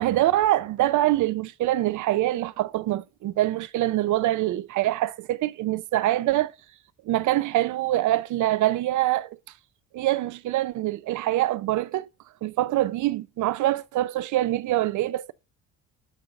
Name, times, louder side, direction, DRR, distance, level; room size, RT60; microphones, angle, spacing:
voice 1, 0.0-6.5 7.1-9.4 9.9-12.1 12.4-15.3, right 15 dB, 60° right, 0.6 m, -24 dB
10.0 x 4.0 x 3.9 m
cardioid pair, 125°, 34 cm